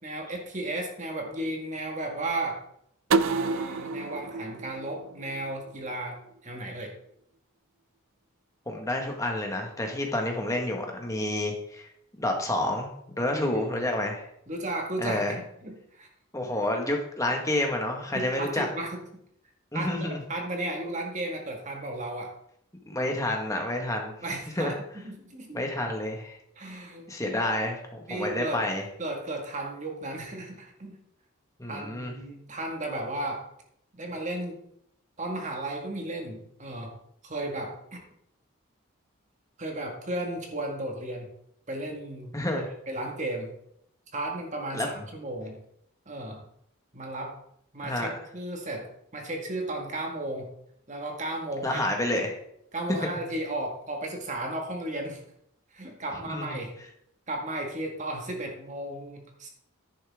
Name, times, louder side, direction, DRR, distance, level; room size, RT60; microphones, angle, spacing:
voice 1, 0.0-2.6 3.2-6.9 13.3-13.9 14.5-16.1 18.1-19.0 19.7-22.3 24.2-25.6 26.6-27.5 28.1-28.6 29.0-31.0 31.7-33.4 33.9-34.6 35.2-37.0 37.2-38.0 39.6-41.3 41.7-43.5 44.1-45.6 46.1-46.4 46.9-47.4 47.7-50.6 50.9-51.9 52.7-55.2 55.7-56.7 57.3-59.5, right 1 dB, 35° right, 2 dB, 1.9 m, -34 dB
sound 1, 3.1-5.9, right 4 dB, 75° right, 0.5 m, -29 dB
voice 2, 8.7-11.8 12.1-14.3 15.0-15.3 16.3-18.7 19.7-20.2 22.9-24.1 24.6-24.7 25.5-26.4 27.1-28.8 31.6-32.1 42.3-42.6 44.7-44.9 47.8-48.1 51.6-52.3 56.3-56.5, left 1 dB, 15° left, 2 dB, 1.6 m, -29 dB
10.5 x 9.9 x 3.6 m, 0.74 s
head